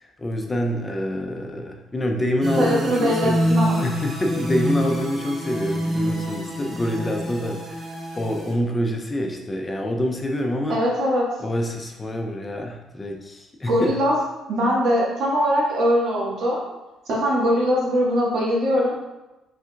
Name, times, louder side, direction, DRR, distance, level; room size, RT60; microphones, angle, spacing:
voice 1, 0.0-10.8 11.4-14.0, left 1 dB, 20° left, 3 dB, 0.5 m, -26 dB
sound 1, 2.4-8.5, equal, 35° right, 1.1 m, -26 dB
voice 2, 2.6-3.8 10.7-11.3 13.7-14.2 14.5-16.6 17.1-18.9, equal, 65° right, -4 dB, 1.4 m, -21 dB
4.8 x 3.4 x 2.3 m, 1.0 s
cardioid pair, 100°, 0 cm